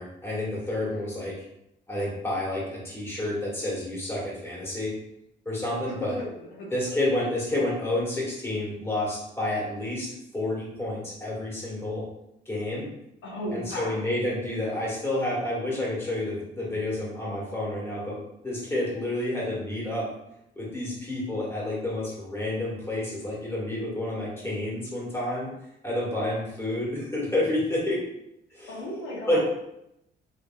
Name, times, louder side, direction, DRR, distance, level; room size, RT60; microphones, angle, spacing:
voice 1, 0.0-1.3 1.9-4.9 5.4-6.2 6.7-10.1 10.3-12.0 12.4-12.9 13.5-20.1 20.5-25.5 25.8-28.0 28.5-28.8 29.3-29.5, left 1 dB, 10° left, -6 dB, 1.5 m, -29 dB
voice 2, 5.9-7.1 13.2-14.1 28.7-29.5, left 1 dB, 90° left, -6 dB, 1.1 m, -35 dB
2.9 x 2.7 x 2.2 m, 0.82 s
cardioid pair, 90°, 20 cm